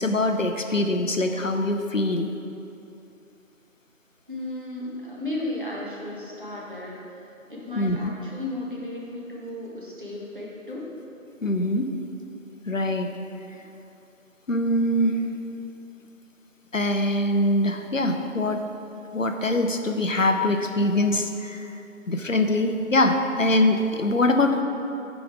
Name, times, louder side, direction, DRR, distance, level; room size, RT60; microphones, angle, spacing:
voice 1, 0.0-2.3 7.8-8.0 11.4-11.9 12.7-13.1 14.5-15.3 16.7-18.6 19.1-21.7 22.1-24.6, left 1 dB, 65° left, 5 dB, 0.7 m, -23 dB
voice 2, 4.3-10.8, left 2 dB, 35° right, -5 dB, 1.4 m, -35 dB
8.7 x 5.1 x 4.9 m, 2.7 s
figure-of-eight pair, 180°, 42 cm